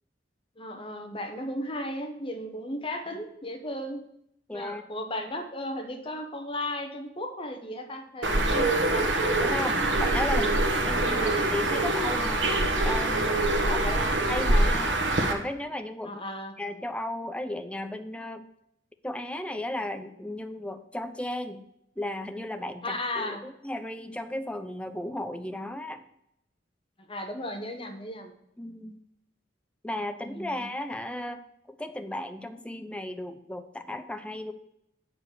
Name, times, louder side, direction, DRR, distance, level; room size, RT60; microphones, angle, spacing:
voice 1, 0.6-4.0 4.5-9.1 10.3-10.6 11.1-11.3 13.6-14.2 16.0-16.5 22.8-23.4 27.1-28.3 30.2-30.7, left 1 dB, 30° left, 4 dB, 1.2 m, -35 dB
voice 2, 4.5-4.8 9.4-12.6 12.8-13.8 14.3-16.2 16.6-18.5 19.0-21.6 22.0-26.0 28.6-29.0 29.8-31.4 31.7-34.5, left 1 dB, 5° left, 8 dB, 0.6 m, -35 dB
Bird, 8.2-15.3, right 2 dB, 80° right, 1.2 m, -24 dB
8.0 x 5.0 x 6.6 m, 0.78 s
head